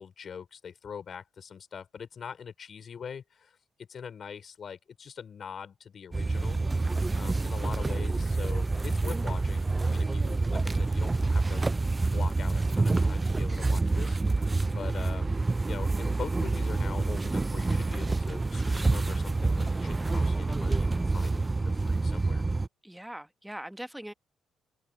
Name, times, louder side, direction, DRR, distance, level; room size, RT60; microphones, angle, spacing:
voice 1, 0.0-6.6 7.2-11.7 12.1-15.4 15.6-22.4, left 7 dB, 50° left, 4.9 m, -43 dB
sound 1, 6.1-22.7, right 3 dB, 20° right, 0.4 m, -27 dB
voice 2, 22.8-24.1, right 1 dB, 5° right, 1.2 m, -41 dB
cardioid pair, 90°, 0 cm